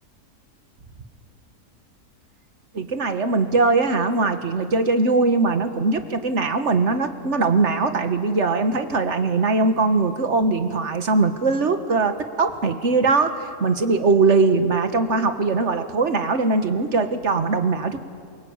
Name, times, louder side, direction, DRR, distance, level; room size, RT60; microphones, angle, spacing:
voice 1, 2.7-18.0, right 3 dB, 50° right, 8 dB, 1.8 m, -21 dB
27.5 x 24.0 x 8.9 m, 2.1 s
omnidirectional pair, 1.6 m